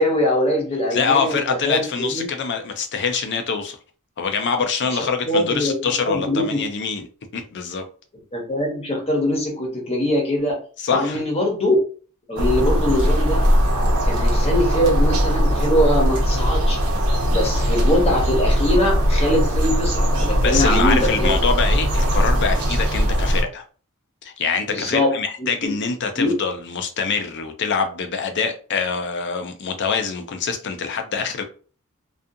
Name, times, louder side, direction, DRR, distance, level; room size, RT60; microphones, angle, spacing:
voice 1, 0.0-2.2 4.9-5.7 6.0-6.6 8.3-10.6 10.9-11.8 12.3-13.5 14.0-16.8 17.3-21.4 24.7-25.1 25.4-25.8 26.2-26.3, left 1 dB, 30° left, 0.8 m, -22 dB
voice 2, 0.9-3.8 4.2-7.0 7.3-7.9 10.8-11.2 20.4-23.6 24.2-31.4, left 5 dB, 55° left, 0.5 m, -24 dB
sound 1, 12.4-23.4, equal, 80° right, 0.7 m, -19 dB
2.4 x 2.3 x 2.6 m
head